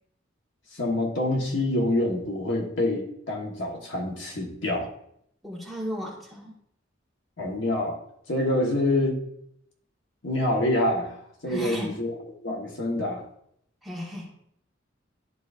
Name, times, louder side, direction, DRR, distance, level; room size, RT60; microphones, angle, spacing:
voice 1, 0.7-4.9 7.4-8.0 8.3-9.2 10.2-11.2 11.4-12.1 12.4-13.2, left 1 dB, 70° left, 0 dB, 1.3 m, -26 dB
voice 2, 5.4-6.6 11.5-12.0 13.8-14.3, equal, ahead, -4 dB, 1.4 m, -35 dB
11.0 x 4.1 x 2.5 m, 0.71 s
head